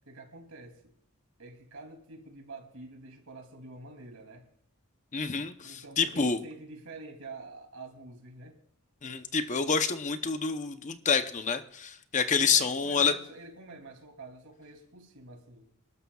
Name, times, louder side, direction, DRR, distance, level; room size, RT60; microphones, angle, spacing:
voice 1, 0.1-0.8 1.4-4.5 5.6-8.6 12.4-15.7, right 3 dB, 80° right, 3 dB, 2.7 m, -47 dB
voice 2, 5.1-6.4 9.0-13.1, left 5 dB, 35° left, 9 dB, 0.7 m, -28 dB
26.0 x 12.5 x 2.3 m, 0.66 s
head